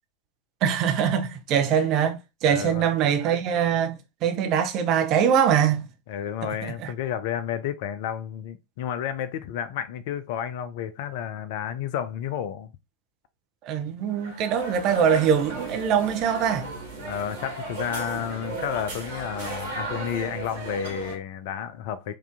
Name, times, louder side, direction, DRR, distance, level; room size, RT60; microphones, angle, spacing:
voice 1, 0.6-5.9 6.6-6.9 13.6-16.7, right 8 dB, 40° right, 0.8 m, -23 dB
voice 2, 2.4-2.9 6.1-12.7 17.0-22.2, left 9 dB, 50° left, 0.5 m, -31 dB
sound 1, 14.1-21.2, right 3 dB, 55° right, 1.6 m, -35 dB
4.8 x 2.7 x 3.4 m
figure-of-eight pair, 90°, 0 cm